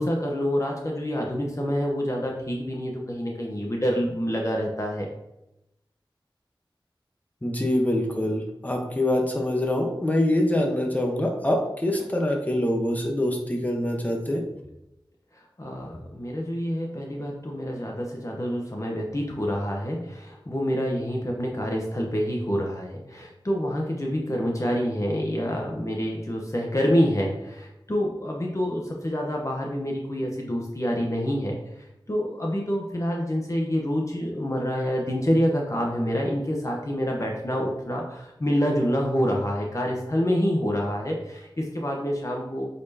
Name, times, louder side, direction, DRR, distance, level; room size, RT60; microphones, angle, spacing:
voice 1, 0.0-5.1 7.6-7.7 15.3-42.7, equal, 35° left, -1 dB, 1.0 m, -27 dB
voice 2, 7.4-14.4, left 1 dB, 20° left, 1 dB, 1.1 m, -25 dB
8.2 x 4.3 x 2.9 m, 0.88 s
wide cardioid pair, 60°, 9 cm